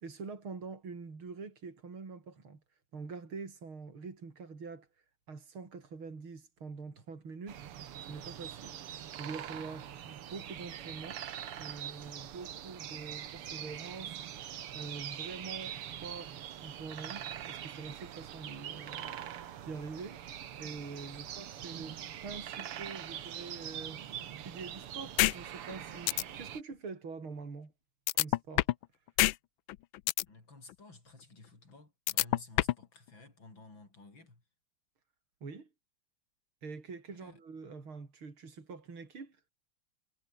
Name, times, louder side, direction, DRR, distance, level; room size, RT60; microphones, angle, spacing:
voice 1, 0.0-2.6 2.9-4.9 5.3-7.6 8.1-11.2 11.6-20.2 20.6-27.7 28.1-28.7 35.4-35.7 36.6-39.4, right 4 dB, 70° right, 4.8 m, -45 dB
sound 1, 7.5-26.6, right 10 dB, 85° right, 2.3 m, -43 dB
sound 2, 25.2-25.3 25.7-25.8 26.1-26.2 28.1-28.8 29.2-29.3 29.7-30.2 32.1-32.8, left 16 dB, 75° left, 1.3 m, -26 dB
voice 2, 30.3-34.4 37.1-37.4, left 3 dB, 60° left, 6.6 m, -54 dB
omnidirectional pair, 2.4 m